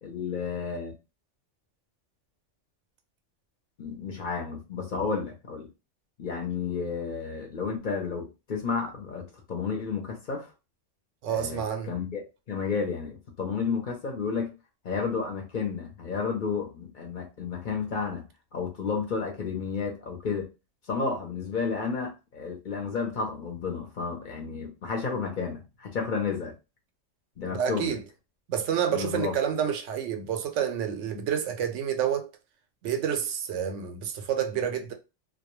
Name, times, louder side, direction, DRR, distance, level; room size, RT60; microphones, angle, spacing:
voice 1, 0.0-0.9 3.8-5.7 6.2-10.5 11.3-11.6 11.9-12.2 12.5-14.5 14.8-18.2 18.5-20.5 20.9-26.5 27.4-28.0 28.9-29.3, left 5 dB, 50° left, 0.7 m, -31 dB
voice 2, 11.2-11.9 27.4-28.0 28.5-32.3 32.8-34.9, right 8 dB, 85° right, 0.9 m, -29 dB
2.3 x 2.2 x 3.0 m
omnidirectional pair, 1.2 m